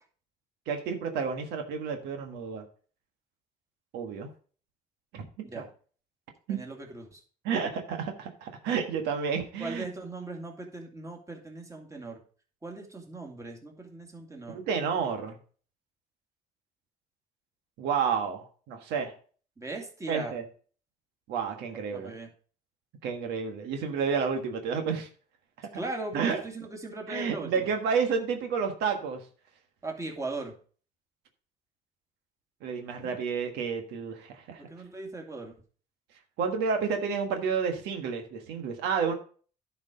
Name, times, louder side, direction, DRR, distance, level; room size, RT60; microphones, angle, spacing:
voice 1, 0.7-2.6 3.9-4.3 5.1-5.3 5.5-5.7 6.5-6.6 7.4-9.8 14.5-15.4 17.8-19.1 20.1-20.4 21.3-22.1 23.0-25.1 25.6-25.7 26.1-26.4 27.1-29.2 32.6-34.6 36.4-39.1, right 6 dB, 90° right, 5 dB, 1.6 m, -30 dB
voice 2, 6.5-7.2 9.6-12.2 12.6-14.6 19.6-20.3 21.9-22.3 25.7-27.5 29.8-30.6 33.0-33.2 34.7-35.5, right 2 dB, 20° right, 2 dB, 2.4 m, -39 dB
10.5 x 5.0 x 5.1 m, 0.41 s
cardioid pair, 110°, 17 cm